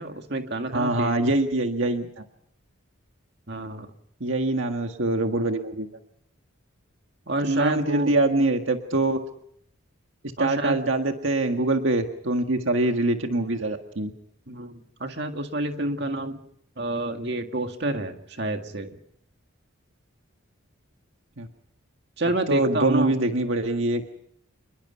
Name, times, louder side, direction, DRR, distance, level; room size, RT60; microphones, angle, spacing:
voice 1, 0.0-1.2 3.5-3.9 7.3-8.2 10.4-10.8 14.5-16.4 16.8-19.0 22.2-23.2, right 2 dB, 55° right, 5 dB, 2.0 m, -28 dB
voice 2, 0.7-2.2 4.2-6.0 7.4-9.2 10.4-14.1 21.4-21.5 22.5-24.1, right 2 dB, 70° right, 5 dB, 1.7 m, -24 dB
29.0 x 21.0 x 5.7 m, 0.70 s
head